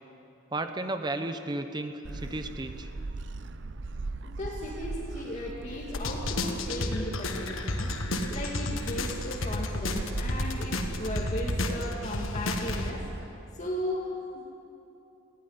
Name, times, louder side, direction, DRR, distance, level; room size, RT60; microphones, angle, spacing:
voice 1, 0.5-2.9, right 2 dB, 20° right, 8 dB, 0.9 m, -33 dB
Gull seagull, 2.0-13.2, right 2 dB, 60° right, 0.7 m, -39 dB
voice 2, 4.2-7.9 8.3-14.5, left 1 dB, 35° left, -4 dB, 2.3 m, -36 dB
sound 1, 5.9-12.9, left 2 dB, 85° left, 1.6 m, -32 dB
19.0 x 16.0 x 9.6 m, 2.8 s
head